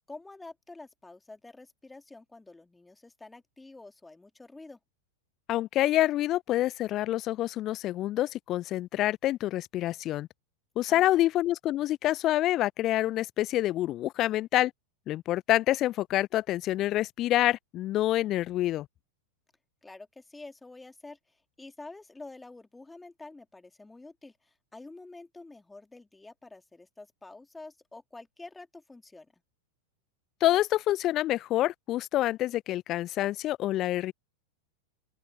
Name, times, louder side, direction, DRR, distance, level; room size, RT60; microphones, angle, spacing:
voice 1, 0.0-4.8 10.9-11.2 19.8-29.3, left 2 dB, 10° left, 2.5 m, -48 dB
voice 2, 5.5-10.3 10.8-14.7 15.1-18.9 30.4-34.1, left 14 dB, 35° left, 0.4 m, -27 dB
open air
figure-of-eight pair, 90°, 0 cm